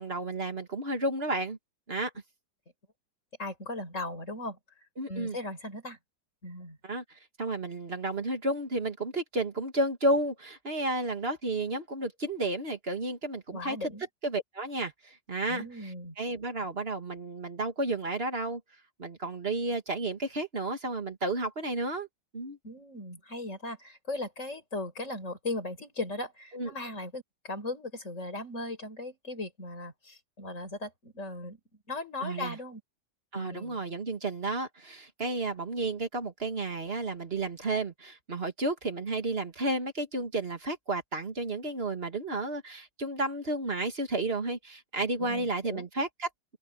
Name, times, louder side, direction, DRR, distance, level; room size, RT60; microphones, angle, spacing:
voice 1, 0.0-1.6 1.9-2.1 5.0-5.4 6.8-7.0 7.4-13.9 14.2-18.6 19.0-22.1 22.3-22.6 26.5-26.7 32.2-32.6 33.3-46.6, right 2 dB, 35° right, 2.3 m, -32 dB
voice 2, 3.4-4.6 5.1-6.0 6.4-6.8 13.5-14.0 15.5-16.1 22.6-31.6 31.9-32.8 33.3-33.8 45.2-45.9, left 2 dB, 40° left, 6.0 m, -38 dB
open air
omnidirectional pair, 2.0 m